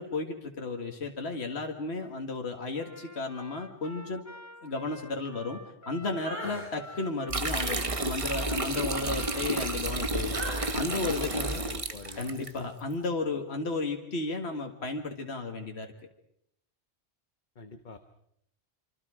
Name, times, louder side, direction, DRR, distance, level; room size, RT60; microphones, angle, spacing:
voice 1, 0.0-4.2 4.6-5.6 5.9-10.4 10.7-11.6 12.2-15.9, left 3 dB, 70° left, 3 dB, 2.1 m, -33 dB
Trumpet, 2.8-10.6, left 1 dB, 15° left, 1.2 m, -49 dB
sound 1, 6.2-6.7 7.5-10.0 10.3-10.9 11.3-11.6 12.0-12.3, right 1 dB, 80° right, 4.9 m, -42 dB
sound 2, 7.3-12.5, right 2 dB, 30° right, 1.2 m, -31 dB
voice 2, 10.7-12.4 17.5-18.0, left 4 dB, 45° left, 7 dB, 1.2 m, -43 dB
26.0 x 26.0 x 5.0 m, 0.74 s
omnidirectional pair, 1.1 m